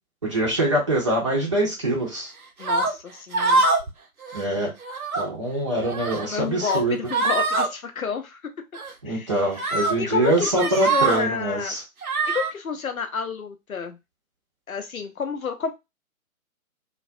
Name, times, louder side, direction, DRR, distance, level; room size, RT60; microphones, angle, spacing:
voice 1, 0.2-2.3 4.3-4.7 5.2-6.9 9.0-11.8, right 1 dB, 25° right, -3 dB, 0.5 m, -24 dB
voice 2, 2.6-3.6 6.2-8.4 9.1-11.7 12.3-14.0 14.7-15.7, left 6 dB, 75° left, 6 dB, 0.7 m, -30 dB
sound 1, 2.6-2.9 3.3-3.9 4.2-4.4 4.8-5.3 5.8-6.3 6.6-6.8 7.1-7.7 8.7-8.9 9.6-9.9 10.4-11.2 12.0-12.5, right 3 dB, 85° right, 0.7 m, -24 dB
2.3 x 2.1 x 2.5 m, 0.23 s
figure-of-eight pair, 130°, 42 cm